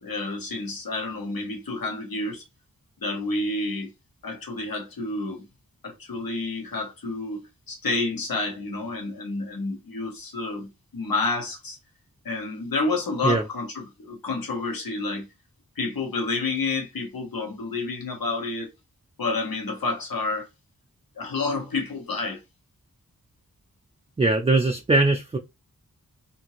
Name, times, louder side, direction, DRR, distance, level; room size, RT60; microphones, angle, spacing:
voice 1, 0.0-2.4 3.0-3.9 4.2-5.4 5.8-10.7 10.9-11.8 12.2-15.2 15.8-18.7 19.2-20.5 21.2-22.4, left 3 dB, 85° left, 1.0 m, -29 dB
voice 2, 24.2-25.4, right 2 dB, 20° right, 0.3 m, -21 dB
2.7 x 2.5 x 3.0 m
wide cardioid pair, 70°, 34 cm